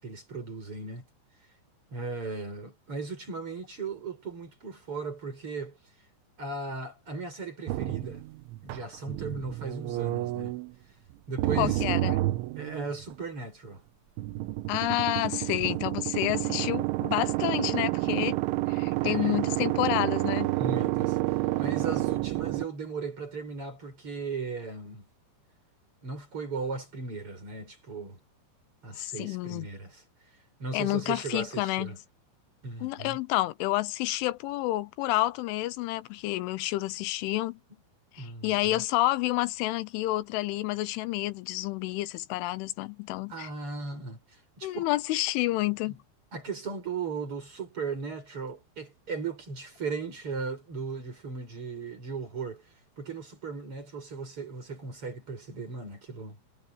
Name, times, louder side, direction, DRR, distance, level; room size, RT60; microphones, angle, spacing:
voice 1, 0.0-1.0 1.9-5.8 6.4-8.2 8.6-10.5 11.3-11.9 12.6-13.8 19.0-19.4 20.5-25.1 26.0-28.2 28.8-30.0 30.6-32.0 32.6-33.2 38.2-38.8 43.3-44.8 45.9-46.0 46.3-56.4, right 4 dB, 30° right, 6.6 m, -37 dB
sound 1, 7.7-10.7 11.4-13.1 14.2-22.7, right 18 dB, 85° right, 3.3 m, -29 dB
voice 2, 11.6-12.2 14.7-18.4 18.7-20.5 29.0-29.7 30.7-31.9 32.8-37.6 38.1-43.5 44.6-45.9, left 17 dB, 85° left, 3.3 m, -29 dB
omnidirectional pair, 5.5 m